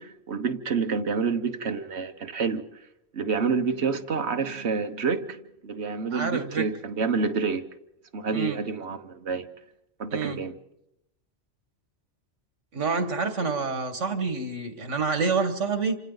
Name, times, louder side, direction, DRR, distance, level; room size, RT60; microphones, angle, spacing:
voice 1, 0.0-2.6 3.1-7.6 8.1-9.5 10.0-10.6, right 5 dB, 65° right, 1.4 m, -28 dB
voice 2, 6.1-6.7 8.3-8.6 10.1-10.4 12.7-16.0, right 4 dB, 85° right, 2.0 m, -27 dB
28.0 x 26.0 x 4.0 m
omnidirectional pair, 1.2 m